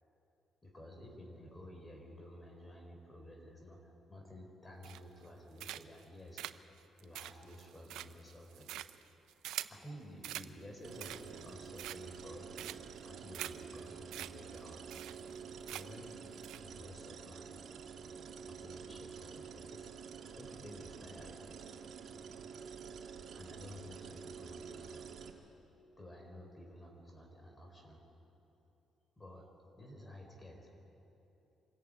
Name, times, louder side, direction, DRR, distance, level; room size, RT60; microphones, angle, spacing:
voice 1, 0.6-6.4 7.0-8.7 9.7-14.8 15.7-16.2 16.6-17.5 18.4-19.9 20.3-21.5 23.3-25.0 26.0-28.0 29.2-29.4 29.8-30.7, left 1 dB, 20° left, 2 dB, 4.4 m, -52 dB
sound 1, 4.8-5.2 5.6-6.0 6.4-9.8 10.2-10.5 10.9-11.4 11.8-12.2 12.6-13.0 13.3-13.5 13.8-13.9 14.1-14.3 14.6-14.7 14.9-15.4 15.7-16.0 16.4-16.6, right 13 dB, 90° right, 0.5 m, -44 dB
sound 2, 10.8-25.3, right 6 dB, 65° right, 2.0 m, -49 dB
25.5 x 14.0 x 8.9 m, 2.9 s
cardioid pair, 90°, 0 cm